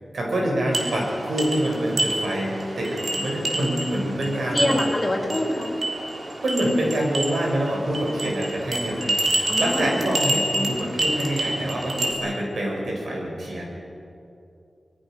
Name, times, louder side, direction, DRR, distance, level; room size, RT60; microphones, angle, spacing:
voice 1, 0.1-4.8 6.4-13.7, right 1 dB, 80° right, -1 dB, 6.8 m, -26 dB
sound 1, 0.7-12.1, right 2 dB, 60° right, 3.6 m, -28 dB
voice 2, 4.3-5.7 9.5-10.1, left 1 dB, 30° left, 0 dB, 4.7 m, -25 dB
25.0 x 21.5 x 6.5 m, 2.7 s
wide cardioid pair, 110°, 0 cm